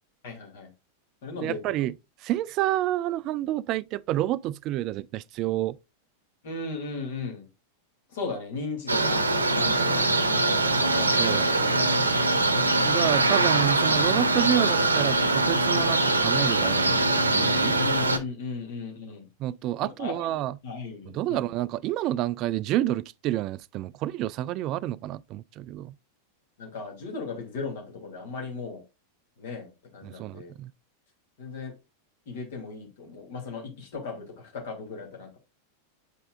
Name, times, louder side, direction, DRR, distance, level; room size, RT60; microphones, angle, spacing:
voice 1, 0.2-0.7 1.2-1.7 6.4-7.5 8.1-9.2 9.5-10.1 10.6-11.5 17.7-19.3 19.8-20.3 20.6-21.5 26.6-28.8 29.4-30.5 31.4-31.7 32.3-35.4, left 4 dB, 55° left, 2.5 m, -36 dB
voice 2, 1.4-1.9 2.2-5.8 11.2-11.5 12.8-17.7 19.4-20.6 21.1-25.9 30.0-30.7, right 14 dB, 40° right, 0.3 m, -29 dB
sound 1, 8.9-18.2, right 2 dB, 80° right, 0.8 m, -23 dB
8.3 x 5.4 x 2.4 m
figure-of-eight pair, 90°, 0 cm